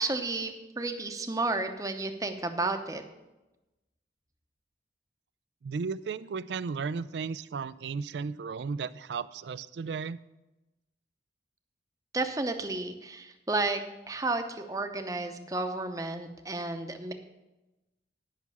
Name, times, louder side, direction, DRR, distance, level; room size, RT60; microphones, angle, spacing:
voice 1, 0.0-3.0 12.1-13.8 14.1-17.1, right 2 dB, 20° right, 6 dB, 0.7 m, -32 dB
voice 2, 5.6-10.2, right 5 dB, 70° right, 17 dB, 0.4 m, -34 dB
10.5 x 6.0 x 6.9 m, 1.0 s
head